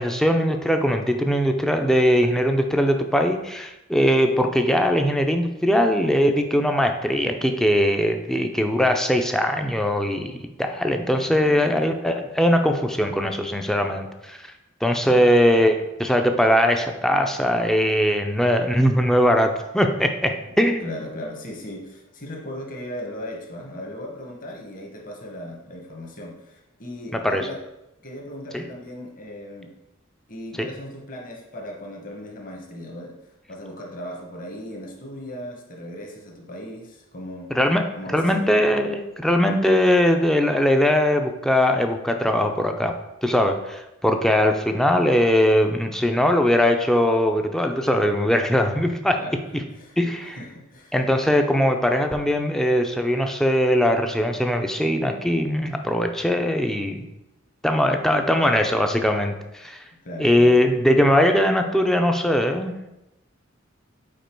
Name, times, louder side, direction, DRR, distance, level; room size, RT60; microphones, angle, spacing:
voice 1, 0.0-14.4 14.8-20.9 27.1-27.5 28.5-28.6 30.6-30.7 37.5-37.9 38.1-42.9 43.2-49.2 50.0-50.4 50.9-57.0 57.6-59.8 60.2-62.9, equal, ahead, 5 dB, 0.4 m, -20 dB
voice 2, 11.3-11.9 15.0-15.3 20.4-20.5 20.8-27.6 28.0-29.7 30.3-33.2 33.5-37.5 37.9-38.5 49.2-50.9 60.0-60.6, left 1 dB, 40° left, 1 dB, 1.1 m, -37 dB
5.2 x 4.5 x 4.5 m, 0.93 s
head